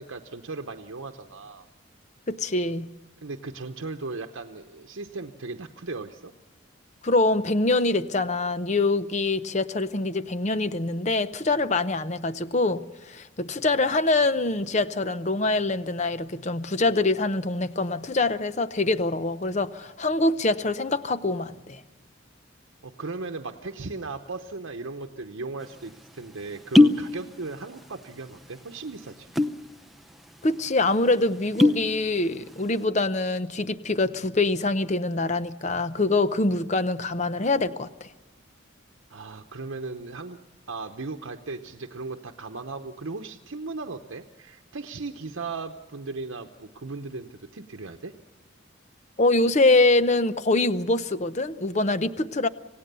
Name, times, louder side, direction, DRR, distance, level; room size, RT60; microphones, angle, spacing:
voice 1, 0.0-1.7 3.2-6.3 22.8-29.3 39.1-40.4 40.7-48.1, right 3 dB, 85° right, 4 dB, 0.9 m, -37 dB
voice 2, 2.3-2.9 7.0-21.8 30.4-37.9 49.2-52.5, left 2 dB, 35° left, 13 dB, 0.7 m, -24 dB
sound 1, 25.7-25.8 26.5-27.1 27.4-28.0 28.3-28.5 29.2-29.6 30.1-30.2 30.5-30.7 31.3-31.9 32.3-32.7, left 2 dB, ahead, 0.6 m, -19 dB
27.0 x 17.0 x 6.8 m, 1.2 s
head